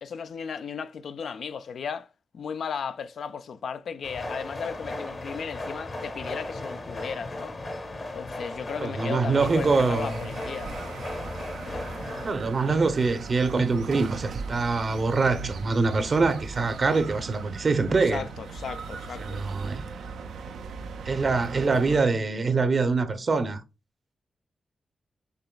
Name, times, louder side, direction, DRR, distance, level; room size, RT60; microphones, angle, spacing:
voice 1, 0.0-7.6 8.1-10.7 18.1-19.4, left 6 dB, 75° left, 0.3 m, -35 dB
sound 1, 4.0-12.3, left 2 dB, 55° left, 1.0 m, -36 dB
voice 2, 8.8-10.1 12.2-18.2 19.2-19.9 21.0-23.6, right 4 dB, 55° right, 0.7 m, -24 dB
sound 2, 9.4-22.0, right 5 dB, 90° right, 0.4 m, -39 dB
6.7 x 3.0 x 2.3 m
supercardioid pair, 45°, 0 cm